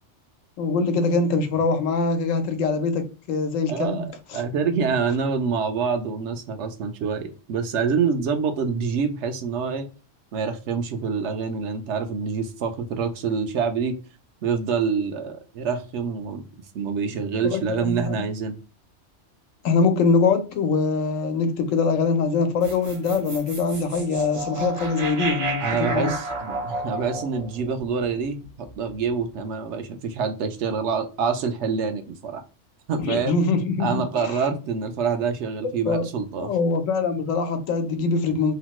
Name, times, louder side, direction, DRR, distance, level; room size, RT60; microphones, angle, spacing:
voice 1, 0.6-4.7 17.1-18.2 19.6-26.1 33.0-34.4 35.9-36.1 36.4-38.5, left 4 dB, 85° left, 1.0 m, -23 dB
voice 2, 3.7-4.1 4.3-9.9 10.3-14.0 14.4-16.5 16.7-18.6 25.6-32.4 32.9-33.3 33.8-36.5, right 5 dB, 70° right, 0.8 m, -26 dB
sound 1, 22.6-28.9, right 2 dB, 40° right, 0.5 m, -32 dB
3.0 x 2.1 x 2.9 m
omnidirectional pair, 1.3 m